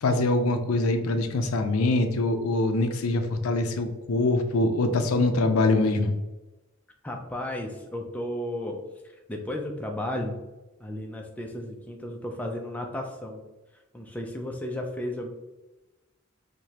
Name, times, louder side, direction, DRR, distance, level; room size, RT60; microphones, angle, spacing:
voice 1, 0.0-6.1, left 2 dB, 90° left, 7 dB, 0.5 m, -24 dB
voice 2, 7.0-8.8 9.0-10.4 10.8-13.4 13.9-15.3, left 1 dB, 5° left, 1 dB, 0.4 m, -34 dB
4.7 x 2.1 x 2.8 m, 1.1 s
head